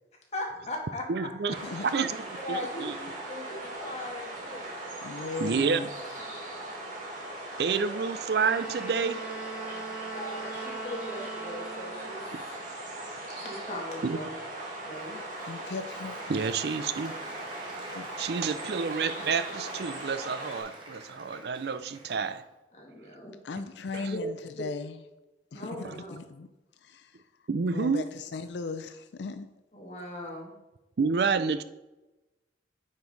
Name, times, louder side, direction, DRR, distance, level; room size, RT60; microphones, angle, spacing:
voice 1, 0.3-1.1 2.2-4.7 5.5-5.8 6.2-6.3 7.7-8.0 10.1-12.6 13.3-14.4 14.8-15.2 22.7-23.3 24.0-24.3 24.6-24.7 25.5-26.2 29.7-30.5, left 1 dB, 35° left, 0 dB, 1.7 m, -39 dB
voice 2, 1.1-1.5 1.9-2.9 5.4-5.8 7.6-9.2 14.0-14.2 16.3-17.1 18.2-22.4 23.9-24.1 27.5-28.1 31.0-31.6, right 5 dB, 60° right, 12 dB, 0.4 m, -29 dB
sound 1, 1.5-20.6, right 1 dB, 45° right, 2.2 m, -39 dB
voice 3, 5.0-5.9 15.5-16.2 17.9-18.1 23.5-24.3 24.6-24.8 25.5-25.6 26.1-26.5 26.8-27.1 27.7-29.5, left 4 dB, 75° left, 10 dB, 0.5 m, -37 dB
Wind instrument woodwind instrument, 8.3-12.3, right 3 dB, 5° right, 1.1 m, -40 dB
Applause, 15.0-22.6, right 2 dB, 25° right, 1.5 m, -47 dB
9.2 x 5.3 x 4.0 m, 1.0 s
head